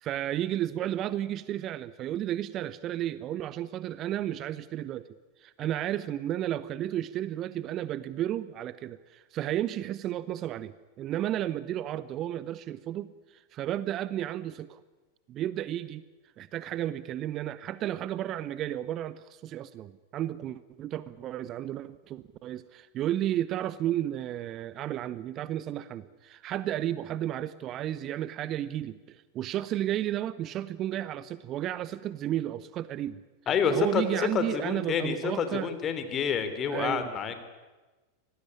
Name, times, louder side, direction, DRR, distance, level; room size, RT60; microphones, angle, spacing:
voice 1, 0.0-5.1 5.4-14.8 15.3-16.0 16.4-33.2 33.7-35.7 36.7-37.1, right 12 dB, 35° right, 17 dB, 0.8 m, -33 dB
voice 2, 33.5-37.3, left 6 dB, 25° left, 9 dB, 3.3 m, -28 dB
25.5 x 18.5 x 9.9 m, 1.2 s
figure-of-eight pair, 90°, 0 cm